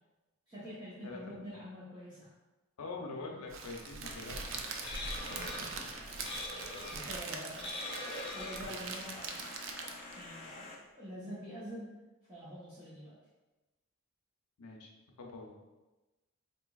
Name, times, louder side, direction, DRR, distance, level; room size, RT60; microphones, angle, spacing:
voice 1, 0.5-2.3 4.9-5.8 6.9-9.6 10.1-11.9 12.3-13.1, equal, 20° right, -12 dB, 0.7 m, -46 dB
voice 2, 1.0-1.4 2.8-4.6 14.6-14.9 15.2-15.6, left 3 dB, 80° left, 0 dB, 0.6 m, -44 dB
Crackle, 3.5-10.2, right 4 dB, 55° right, 0.3 m, -42 dB
sound 1, 4.0-10.8, left 2 dB, 25° left, 0.3 m, -44 dB
4.0 x 2.9 x 2.3 m, 1.1 s
head